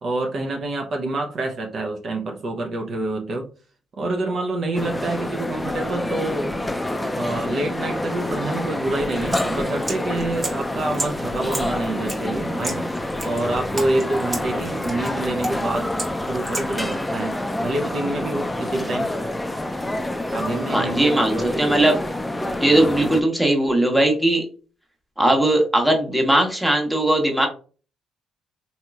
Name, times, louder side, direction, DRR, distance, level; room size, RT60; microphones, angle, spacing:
voice 1, 0.0-3.5 4.0-6.5 7.1-12.8 13.2-15.9 16.3-19.1 20.3-21.8, right 2 dB, 55° right, 2 dB, 0.7 m, -27 dB
sound 1, 4.7-23.2, left 1 dB, 10° left, 0.4 m, -27 dB
sound 2, 9.1-16.9, right 2 dB, 30° right, 1.0 m, -35 dB
voice 2, 20.7-22.0 22.6-24.4 25.2-27.5, right 1 dB, 5° right, 1 dB, 1.3 m, -19 dB
4.1 x 2.8 x 2.4 m, 0.37 s
cardioid pair, 90°, 0 cm